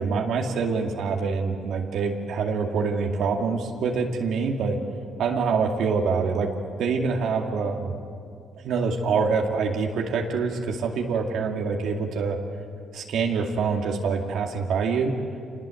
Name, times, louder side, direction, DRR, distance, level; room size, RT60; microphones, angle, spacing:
voice 1, 0.0-4.8 5.2-8.0 8.6-12.4 12.9-15.2, right 5 dB, 75° right, 1 dB, 2.3 m, -25 dB
26.0 x 20.5 x 7.8 m, 2.4 s
cardioid pair, 90°, 0 cm